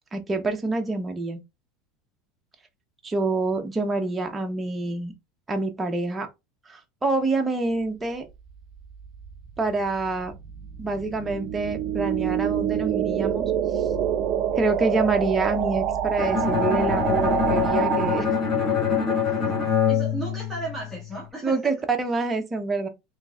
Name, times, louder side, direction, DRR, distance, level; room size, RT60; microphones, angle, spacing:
voice 1, 0.1-1.4 3.0-5.1 5.5-6.3 6.7-8.3 9.6-10.3 10.8-13.4 14.6-18.3 21.4-22.9, right 3 dB, 15° right, 0.8 m, -26 dB
sound 1, 8.9-18.2, right 10 dB, 45° right, 0.5 m, -26 dB
Bowed string instrument, 16.2-21.1, left 6 dB, 25° left, 1.7 m, -24 dB
voice 2, 19.9-21.8, right 2 dB, 5° left, 1.5 m, -35 dB
4.5 x 3.2 x 2.4 m
supercardioid pair, 135°, 0 cm